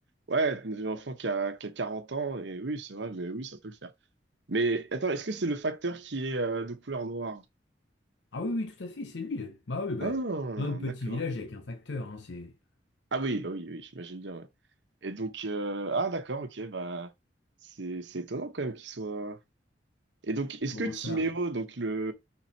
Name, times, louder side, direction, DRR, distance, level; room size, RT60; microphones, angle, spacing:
voice 1, 0.3-3.9 4.5-7.4 10.0-11.2 13.1-14.5 15.0-17.1 17.8-19.4 20.2-22.1, right 3 dB, 80° right, 1.1 m, -32 dB
voice 2, 8.3-10.2 10.6-12.5 20.7-21.2, left 2 dB, 90° left, 0.7 m, -35 dB
6.1 x 3.9 x 4.2 m
head